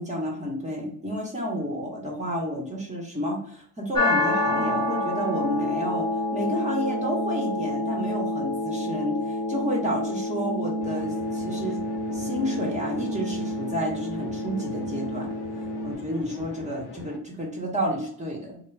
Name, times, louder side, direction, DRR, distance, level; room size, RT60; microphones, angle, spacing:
voice 1, 0.0-11.8 12.1-15.3 15.8-18.6, equal, 20° right, -2 dB, 1.1 m, -30 dB
sound 1, 3.9-15.9, left 1 dB, 10° left, 0.9 m, -28 dB
sound 2, 10.8-17.2, left 4 dB, 80° left, 0.7 m, -42 dB
3.5 x 2.3 x 3.3 m, 0.62 s
cardioid pair, 115°, 39 cm